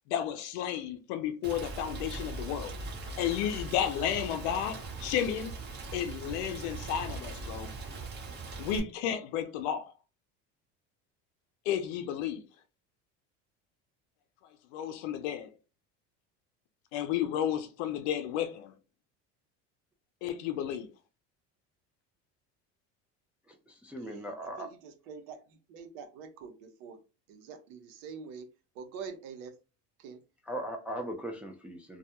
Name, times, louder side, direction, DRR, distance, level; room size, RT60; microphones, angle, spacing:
voice 1, 0.1-2.7 3.2-5.6 5.9-7.7 8.6-9.9 11.7-12.5 14.7-15.5 16.9-18.7 20.2-20.9, left 9 dB, 80° left, 0.5 m, -32 dB
Rain, 1.4-8.8, right 3 dB, 30° right, 1.0 m, -40 dB
voice 2, 23.5-24.8 30.4-32.0, right 1 dB, 5° right, 0.4 m, -39 dB
voice 3, 24.0-27.0 27.3-28.5 28.7-29.5 30.0-30.2, right 6 dB, 75° right, 0.8 m, -45 dB
2.3 x 2.1 x 2.8 m
supercardioid pair, 95°, 34 cm